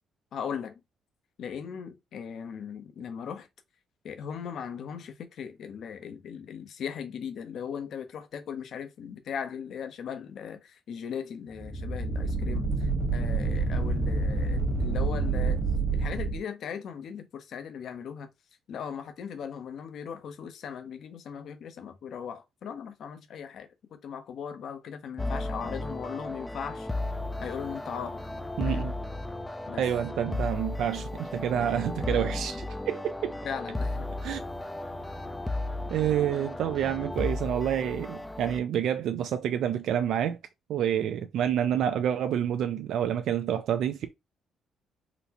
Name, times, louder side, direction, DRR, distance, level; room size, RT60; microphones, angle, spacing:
voice 1, 0.3-0.8 1.4-3.5 4.0-12.7 13.1-15.6 15.9-18.3 18.7-26.9 27.4-28.2 28.6-28.9 29.7-29.8 33.4-34.1, left 7 dB, 70° left, 0.6 m, -38 dB
sound 1, 11.5-16.4, right 3 dB, 40° right, 1.1 m, -28 dB
sound 2, 25.2-38.6, left 2 dB, 10° left, 0.3 m, -34 dB
voice 2, 28.6-28.9 29.8-33.4 34.2-34.4 35.9-40.4 40.7-44.2, right 9 dB, 75° right, 0.3 m, -28 dB
3.9 x 2.1 x 2.8 m
cardioid pair, 90°, 0 cm